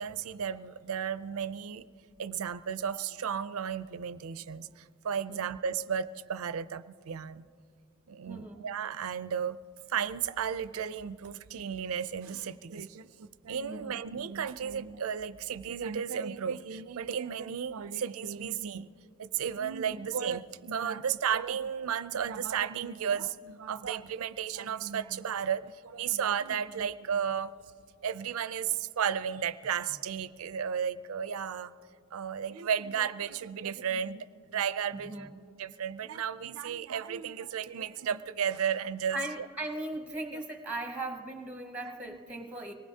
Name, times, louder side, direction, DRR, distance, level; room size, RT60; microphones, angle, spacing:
voice 1, 0.0-1.9 2.2-7.5 8.1-9.6 9.9-18.9 19.2-27.6 28.0-31.7 32.1-34.3 34.5-35.3 35.6-39.5 40.3-40.4 42.1-42.2, right 8 dB, 70° right, 14 dB, 0.4 m, -34 dB
voice 2, 8.3-8.6 13.7-14.0 19.8-20.0 34.9-35.3 39.1-42.7, right 1 dB, 5° right, 4 dB, 0.8 m, -38 dB
25.5 x 19.0 x 2.8 m, 2.3 s
head